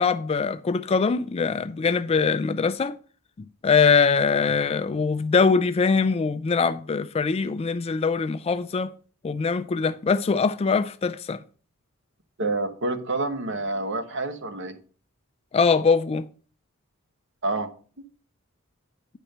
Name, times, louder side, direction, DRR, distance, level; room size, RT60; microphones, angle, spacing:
voice 1, 0.0-3.0 3.6-8.9 9.2-11.4 15.5-16.2, left 5 dB, 25° left, 0.3 m, -22 dB
voice 2, 12.4-14.8 17.4-17.7, right 2 dB, 55° right, 1.1 m, -28 dB
10.0 x 4.3 x 6.5 m
head